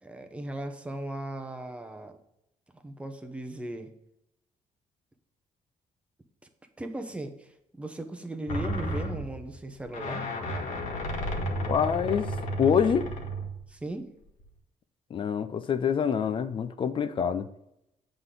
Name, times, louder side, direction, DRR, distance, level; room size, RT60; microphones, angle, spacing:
voice 1, 0.0-2.2 2.7-3.9 6.8-10.3 13.7-14.1, right 1 dB, 10° right, 0.9 m, -37 dB
sound 1, 8.5-13.7 14.4-14.5, equal, 70° left, 1.6 m, -32 dB
voice 2, 11.7-13.1 15.1-17.5, left 7 dB, 45° left, 0.6 m, -26 dB
8.0 x 3.8 x 6.7 m
cardioid pair, 135°, 13 cm